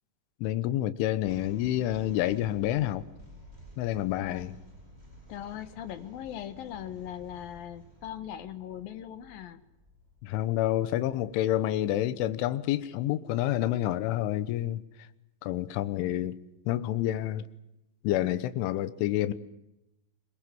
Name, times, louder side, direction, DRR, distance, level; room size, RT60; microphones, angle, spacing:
voice 1, 0.4-3.1 3.8-4.6 10.2-15.1 15.4-16.4 16.7-17.5 18.0-19.3, left 13 dB, 85° left, 3.5 m, -28 dB
sound 1, 1.2-12.5, right 1 dB, 10° right, 7.3 m, -53 dB
voice 2, 4.2-4.5 5.3-9.6 12.8-12.9, left 11 dB, 70° left, 2.3 m, -40 dB
25.5 x 21.5 x 7.7 m
omnidirectional pair, 5.6 m